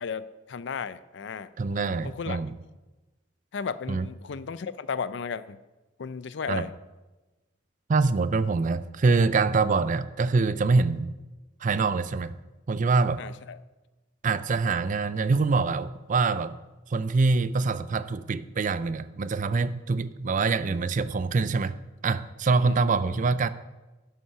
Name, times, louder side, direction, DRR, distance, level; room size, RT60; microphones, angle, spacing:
voice 1, 0.0-1.5 2.0-2.4 3.5-5.6 6.0-6.7 13.2-13.6 22.6-22.8, left 6 dB, 65° left, 0.4 m, -34 dB
voice 2, 1.6-2.5 3.9-4.1 6.5-6.7 7.9-11.1 11.6-12.3 12.7-13.2 14.2-16.6 16.9-21.8 22.0-23.5, right 4 dB, 45° right, 0.4 m, -25 dB
12.5 x 5.6 x 5.7 m
head